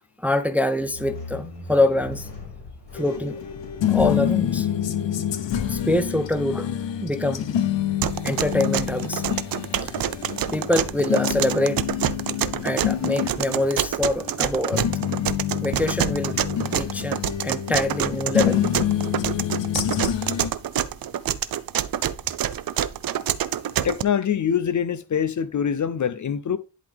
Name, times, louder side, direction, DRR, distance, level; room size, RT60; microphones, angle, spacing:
voice 1, 0.2-2.3 2.9-3.4 3.9-4.7 5.7-6.7 7.0-7.4 8.2-9.2 9.8-9.9 10.5-11.8 12.6-14.8 15.6-16.4 16.7-18.6, left 1 dB, 5° right, 0.5 m, -24 dB
sound 1, 0.8-11.9, left 4 dB, 70° left, 3.3 m, -42 dB
sound 2, 3.0-20.5, left 10 dB, 90° left, 0.8 m, -27 dB
sound 3, 8.0-24.0, right 11 dB, 55° right, 0.5 m, -27 dB
voice 2, 23.8-26.6, left 8 dB, 45° left, 0.5 m, -24 dB
11.0 x 3.8 x 3.5 m
wide cardioid pair, 105°, 42 cm